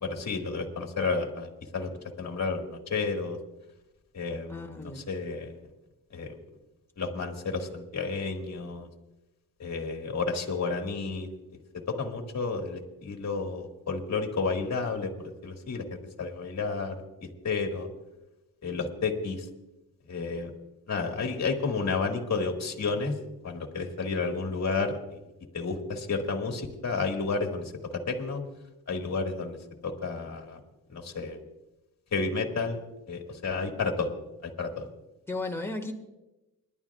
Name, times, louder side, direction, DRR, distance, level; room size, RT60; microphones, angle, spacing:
voice 1, 0.0-1.9 2.2-3.4 4.1-4.6 5.1-5.5 6.1-6.4 7.0-8.9 9.6-11.3 11.9-16.9 17.4-17.9 18.6-19.5 20.1-20.5 20.9-23.2 23.4-25.2 25.5-28.4 28.9-29.6 29.8-30.6 30.9-31.4 32.1-32.8 33.1-34.1 34.4-34.9, left 4 dB, 45° left, 3 dB, 1.9 m, -31 dB
voice 2, 4.5-5.1 35.3-35.9, left 2 dB, 5° left, 2 dB, 1.7 m, -35 dB
29.0 x 11.5 x 2.4 m, 0.99 s
cardioid pair, 115°, 37 cm